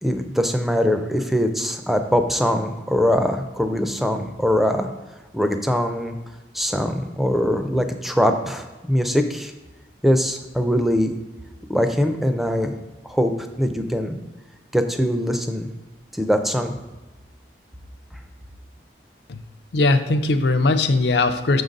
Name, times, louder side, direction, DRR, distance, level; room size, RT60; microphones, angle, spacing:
voice 1, 0.0-4.9 5.3-6.1 6.5-9.5 10.0-11.1 11.7-12.7 13.0-13.3 13.6-14.2 14.7-15.7 16.1-16.7, equal, ahead, 6 dB, 0.4 m, -22 dB
voice 2, 19.7-21.6, left 2 dB, 65° left, 9 dB, 0.5 m, -19 dB
6.6 x 3.9 x 5.2 m, 1.2 s
head